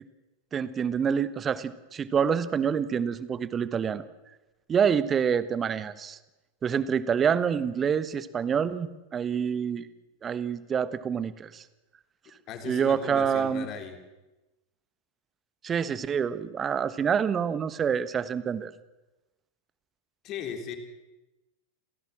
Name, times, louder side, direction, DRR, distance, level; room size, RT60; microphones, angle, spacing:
voice 1, 0.5-4.1 4.7-6.2 6.6-9.9 10.2-11.6 12.6-13.7 15.6-18.7, right 7 dB, 20° right, 16 dB, 1.3 m, -27 dB
voice 2, 12.5-14.0 20.2-20.8, left 7 dB, 35° left, 5 dB, 3.9 m, -37 dB
28.5 x 17.0 x 7.5 m, 1.1 s
figure-of-eight pair, 90°, 0 cm